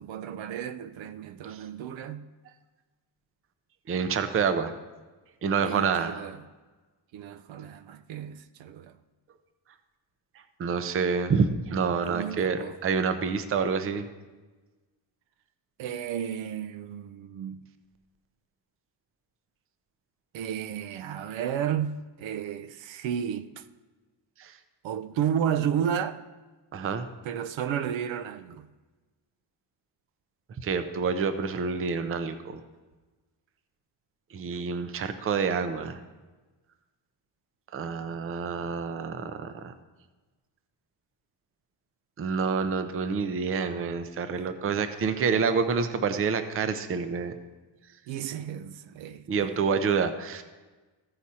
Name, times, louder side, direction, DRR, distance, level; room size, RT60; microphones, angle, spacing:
voice 1, 0.0-2.3 5.6-6.4 7.1-9.0 12.1-12.8 15.8-17.7 20.3-23.7 24.8-26.2 27.2-28.7 44.3-44.5 48.1-49.5, right 9 dB, 80° right, 0.6 m, -32 dB
voice 2, 3.9-4.7 5.4-6.2 10.6-14.1 24.4-24.5 26.7-27.1 30.6-32.6 34.3-36.0 37.7-39.7 42.2-47.3 49.3-50.4, right 5 dB, 30° right, 0.5 m, -28 dB
14.5 x 4.9 x 4.2 m
cardioid pair, 160°, 45 cm